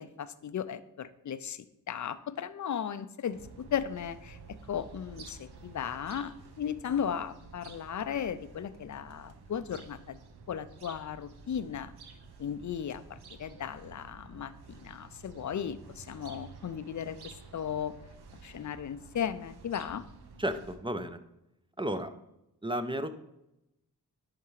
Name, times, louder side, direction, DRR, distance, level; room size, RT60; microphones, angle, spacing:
voice 1, 0.0-4.4 4.7-10.2 10.5-11.9 12.4-17.9 18.4-20.0, left 8 dB, 50° left, 14 dB, 0.5 m, -36 dB
sound 1, 3.3-20.8, right 4 dB, 75° right, 0.8 m, -51 dB
voice 2, 20.4-21.2 21.8-22.1 22.6-23.1, right 1 dB, 15° right, 10 dB, 0.5 m, -33 dB
10.5 x 3.6 x 3.2 m, 0.86 s
cardioid pair, 50°, 39 cm